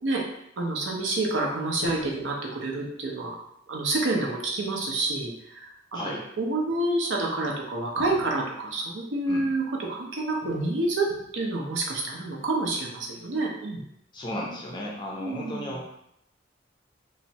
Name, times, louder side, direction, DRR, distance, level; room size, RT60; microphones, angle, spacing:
voice 1, 0.6-3.4 3.7-11.1 11.3-13.8 15.2-15.8, right 2 dB, 75° right, 0 dB, 0.6 m, -28 dB
sound 1, 1.8-2.4 8.0-8.5 10.4-10.7 11.1-11.4, left 2 dB, 90° left, 0.5 m, -43 dB
voice 2, 5.9-6.2 9.3-9.4 14.1-15.8, left 1 dB, 25° left, -3 dB, 0.4 m, -34 dB
3.1 x 2.0 x 2.7 m, 0.75 s
head